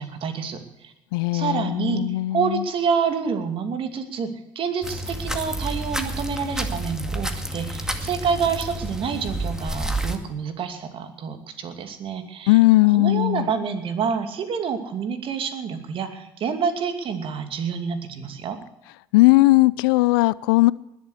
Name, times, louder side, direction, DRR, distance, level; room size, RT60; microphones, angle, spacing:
voice 1, 0.0-0.9 1.3-2.1 2.3-12.6 12.9-18.6, right 6 dB, 50° right, 7 dB, 2.6 m, -28 dB
voice 2, 1.1-2.7 12.5-13.5 19.1-20.7, left 20 dB, 75° left, 21 dB, 0.5 m, -18 dB
sound 1, 4.8-10.2, right 1 dB, 5° right, 2.1 m, -29 dB
20.5 x 7.4 x 8.3 m, 0.90 s
hypercardioid pair, 70°, 12 cm